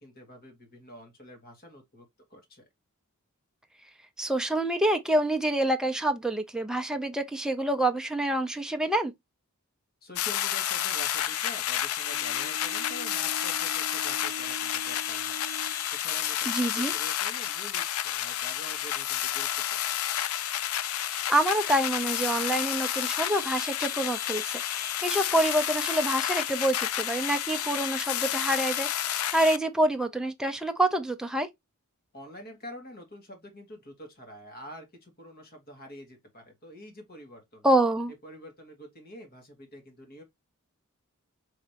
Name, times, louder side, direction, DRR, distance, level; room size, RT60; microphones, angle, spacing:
voice 1, 0.0-2.1 2.3-2.6 10.0-20.0 32.1-37.6 38.2-40.2, equal, 45° left, 1.9 m, -47 dB
voice 2, 4.2-9.1 16.5-16.9 21.0-31.5 37.6-38.1, right 1 dB, 5° right, 0.5 m, -27 dB
sound 1, 10.2-29.6, left 11 dB, 70° left, 0.4 m, -30 dB
Bowed string instrument, 12.1-15.9, right 3 dB, 50° right, 0.5 m, -44 dB
4.9 x 3.3 x 2.8 m
head